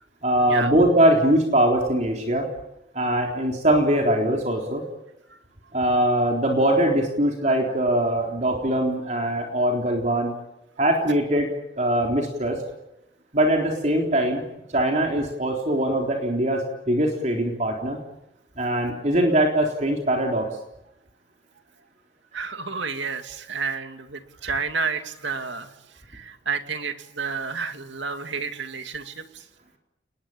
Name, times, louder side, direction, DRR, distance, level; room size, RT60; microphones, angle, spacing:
voice 1, 0.2-2.5 2.9-4.8 5.7-10.3 10.8-11.5 11.8-12.6 13.3-14.4 14.7-18.0 18.6-20.5, right 1 dB, 35° right, 1 dB, 3.8 m, -22 dB
voice 2, 22.3-25.7 26.1-29.4, right 5 dB, 70° right, 7 dB, 2.5 m, -30 dB
29.5 x 21.0 x 8.9 m, 0.88 s
head